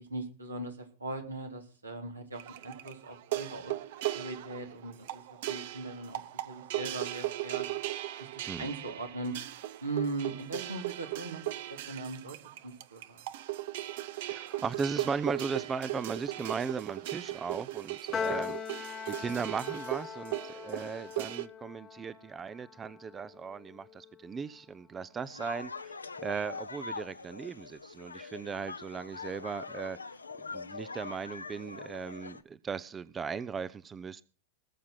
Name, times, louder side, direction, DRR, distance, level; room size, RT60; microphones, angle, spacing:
voice 1, 0.0-3.7 4.1-5.2 5.5-7.7 8.2-9.3 9.8-12.4 12.6-13.2, right 2 dB, 85° right, 3.6 m, -39 dB
sound 1, 2.3-21.5, right 15 dB, 55° right, 0.9 m, -38 dB
voice 2, 14.2-30.0 30.5-34.2, right 6 dB, 20° right, 0.6 m, -37 dB
Piano, 18.1-24.6, left 7 dB, 20° left, 1.3 m, -41 dB
sound 2, 25.2-32.4, left 4 dB, 80° left, 0.9 m, -43 dB
19.5 x 7.3 x 5.9 m
figure-of-eight pair, 90°, 0 cm